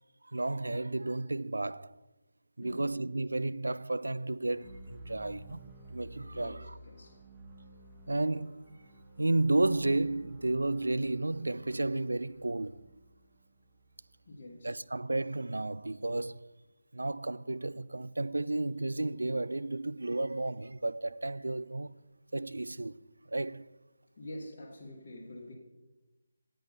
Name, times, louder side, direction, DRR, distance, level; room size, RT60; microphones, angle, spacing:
voice 1, 0.3-1.9 2.6-6.7 8.1-8.7 9.2-12.8 14.6-16.4 16.9-21.9 22.3-23.0 23.3-23.7, right 2 dB, 70° right, 0.3 m, -32 dB
voice 2, 2.6-2.9 6.3-7.2 14.3-14.8 24.2-25.5, left 1 dB, 35° left, 1.7 m, -46 dB
sound 1, 4.4-14.5, right 1 dB, 10° right, 1.2 m, -52 dB
8.6 x 8.0 x 5.4 m
figure-of-eight pair, 155°, 0 cm